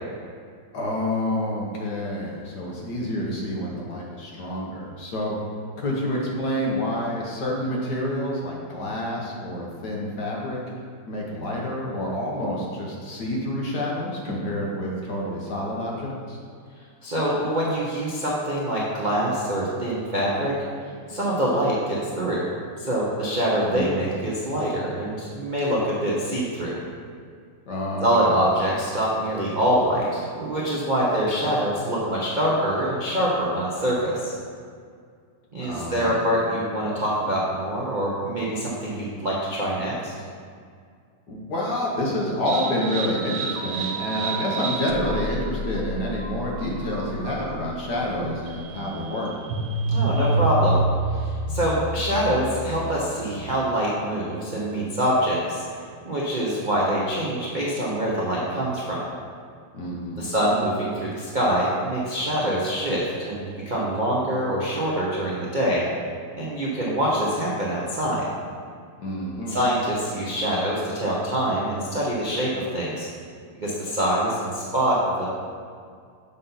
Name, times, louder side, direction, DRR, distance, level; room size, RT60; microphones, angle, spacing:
voice 1, 0.7-5.4 5.8-10.6 11.1-16.4 23.7-24.1 27.7-28.4 35.6-36.2 41.3-49.3 59.7-60.3 69.0-69.6, left 1 dB, 55° left, -3 dB, 1.5 m, -28 dB
voice 2, 17.0-20.6 21.1-22.5 22.8-26.8 28.0-34.3 35.5-40.1 49.9-50.8 51.1-55.6 56.0-59.0 60.1-65.8 66.3-68.2 69.5-73.1 73.6-75.3, equal, 55° right, -6 dB, 0.5 m, -25 dB
sound 1, 42.5-53.1, right 2 dB, 90° right, 1.6 m, -28 dB
7.4 x 5.6 x 4.0 m, 2.2 s
omnidirectional pair, 2.4 m